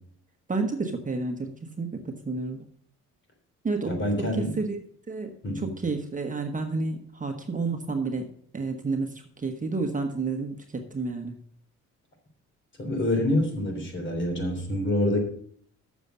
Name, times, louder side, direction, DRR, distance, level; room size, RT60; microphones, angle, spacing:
voice 1, 0.5-2.6 3.6-4.0 4.4-4.8 5.1-8.3 8.5-11.4, right 3 dB, 25° right, 4 dB, 1.2 m, -30 dB
voice 2, 3.9-4.5 5.4-5.7 12.8-15.2, left 1 dB, 40° left, 4 dB, 3.4 m, -26 dB
7.2 x 6.9 x 6.7 m, 0.63 s
cardioid pair, 90°, 30 cm